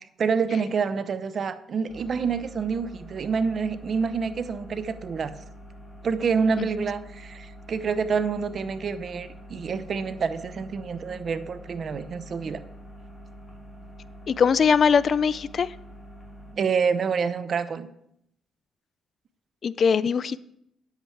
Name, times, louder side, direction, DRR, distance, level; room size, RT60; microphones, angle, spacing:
voice 1, 0.2-5.3 6.0-12.6 16.5-17.9, right 5 dB, 50° right, 12 dB, 0.7 m, -27 dB
sound 1, 1.9-16.5, equal, 5° left, 2.7 m, -45 dB
voice 2, 14.3-15.8 19.6-20.4, left 6 dB, 50° left, 19 dB, 0.3 m, -21 dB
9.9 x 8.1 x 4.6 m, 0.77 s
cardioid pair, 95°, 0 cm